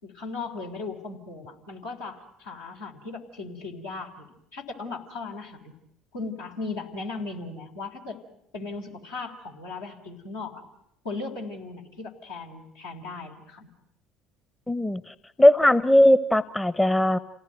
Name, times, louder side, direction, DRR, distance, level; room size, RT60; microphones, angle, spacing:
voice 1, 0.0-5.7 6.1-8.2 8.5-10.6 11.0-13.7, left 3 dB, 80° left, -1 dB, 3.9 m, -37 dB
voice 2, 14.7-15.0 15.4-17.2, left 1 dB, 10° left, 15 dB, 0.9 m, -18 dB
28.0 x 17.5 x 9.2 m, 0.79 s
figure-of-eight pair, 60°, 0 cm